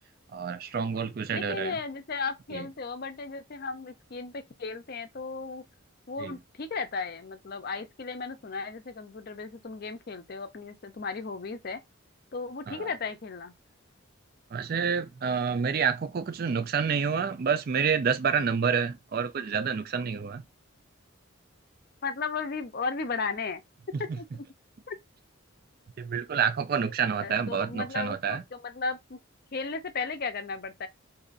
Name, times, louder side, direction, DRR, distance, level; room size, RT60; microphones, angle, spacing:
voice 1, 0.3-1.8 2.5-2.6 6.2-6.3 12.7-12.9 14.5-20.4 23.9-24.0 26.0-28.4, right 6 dB, 45° right, 0.4 m, -28 dB
voice 2, 1.3-5.6 6.1-11.8 12.3-13.5 22.0-23.6 24.2-24.3 24.9-25.0 27.2-29.2 29.5-30.9, left 4 dB, 45° left, 0.5 m, -35 dB
2.7 x 2.5 x 3.9 m
head